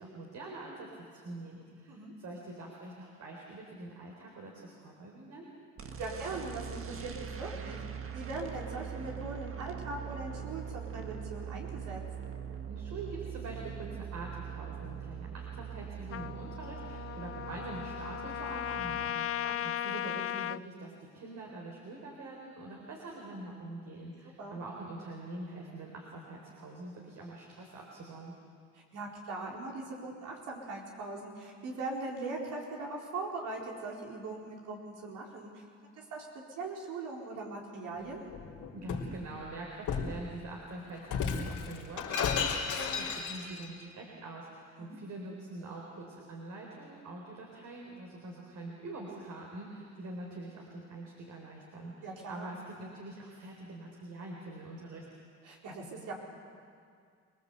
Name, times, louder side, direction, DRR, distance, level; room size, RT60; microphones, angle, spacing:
voice 1, 0.0-5.5 12.7-28.3 38.7-55.0, right 2 dB, 65° right, -1 dB, 4.3 m, -44 dB
sound 1, 5.8-19.1, right 8 dB, 45° right, 1.7 m, -42 dB
voice 2, 6.0-7.8 8.1-12.0 19.4-19.5 24.4-24.6 28.7-35.6 36.0-36.3 36.6-38.2 44.8-45.0 52.0-52.5 55.4-56.1, right 3 dB, 85° right, -2 dB, 4.4 m, -40 dB
Trumpet, 16.1-20.6, left 11 dB, 50° left, 0.6 m, -36 dB
Shatter, 38.3-39.1 39.9-40.2 41.0-43.7, left 6 dB, 75° left, 3.7 m, -33 dB
27.5 x 19.5 x 8.1 m, 2.2 s
cardioid pair, 90°, 30 cm